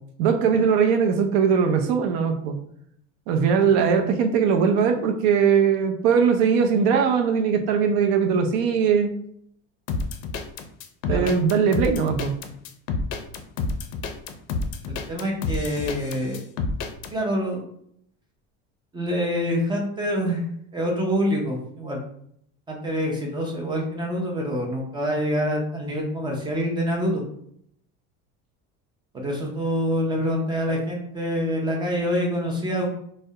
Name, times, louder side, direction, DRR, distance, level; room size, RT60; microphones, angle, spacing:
voice 1, 0.2-2.5 3.3-9.1 11.1-12.3, right 6 dB, 70° right, 5 dB, 0.5 m, -20 dB
sound 1, 9.9-17.1, left 3 dB, 70° left, 0.4 m, -29 dB
voice 2, 14.9-16.4 17.1-17.6 18.9-20.4 20.7-22.0 22.7-27.2 29.1-32.9, equal, 15° right, 0 dB, 0.4 m, -26 dB
2.3 x 2.0 x 2.7 m, 0.68 s
cardioid pair, 155°, 29 cm